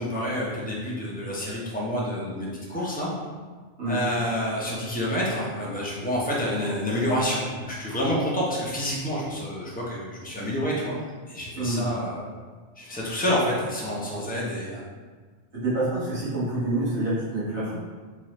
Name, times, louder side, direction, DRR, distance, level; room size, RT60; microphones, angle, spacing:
voice 1, 0.0-3.1 3.9-11.0 11.3-12.2 12.8-14.8, equal, 10° left, -6 dB, 0.7 m, -28 dB
voice 2, 11.5-11.9 15.5-17.8, right 1 dB, 75° right, -10 dB, 1.7 m, -27 dB
3.7 x 3.1 x 3.1 m, 1.5 s
omnidirectional pair, 1.2 m